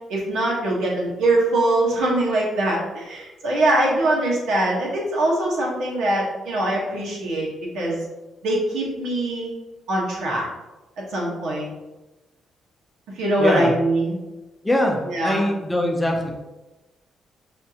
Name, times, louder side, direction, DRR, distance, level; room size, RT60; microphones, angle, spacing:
voice 1, 0.1-7.5 7.7-8.0 8.4-9.5 9.9-10.4 11.0-11.7 13.1-14.1 15.1-15.4, right 1 dB, 90° right, -4 dB, 1.2 m, -22 dB
voice 2, 13.4-13.7 14.6-16.3, left 1 dB, 5° left, 0 dB, 0.6 m, -22 dB
5.6 x 2.6 x 2.8 m, 1.1 s
cardioid pair, 165°, 0 cm